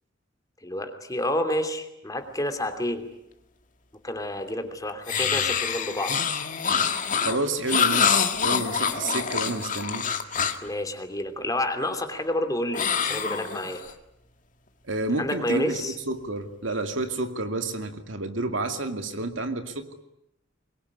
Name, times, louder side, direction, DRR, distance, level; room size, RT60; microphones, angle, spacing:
voice 1, 0.6-3.1 4.0-6.2 10.6-13.8 15.2-16.0, left 1 dB, 20° left, 7 dB, 2.9 m, -29 dB
sound 1, 5.1-10.7 12.7-13.9, left 6 dB, 40° left, 1.9 m, -26 dB
voice 2, 7.1-10.1 14.9-20.0, right 2 dB, 75° right, 7 dB, 2.4 m, -30 dB
25.0 x 22.0 x 9.9 m, 0.84 s
head